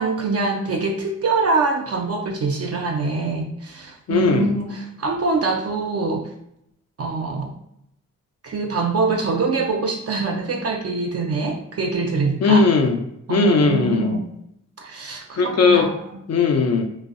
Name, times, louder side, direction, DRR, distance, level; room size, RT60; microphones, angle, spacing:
voice 1, 0.0-6.3 7.0-7.5 8.4-12.7 13.3-14.2 14.8-15.9, right 3 dB, 45° right, 1 dB, 0.4 m, -24 dB
voice 2, 4.1-4.5 12.4-13.0 13.3-14.2 15.4-15.9 16.3-16.8, left 4 dB, 45° left, 4 dB, 0.5 m, -18 dB
2.5 x 2.0 x 2.4 m, 0.77 s
supercardioid pair, 40°, 36 cm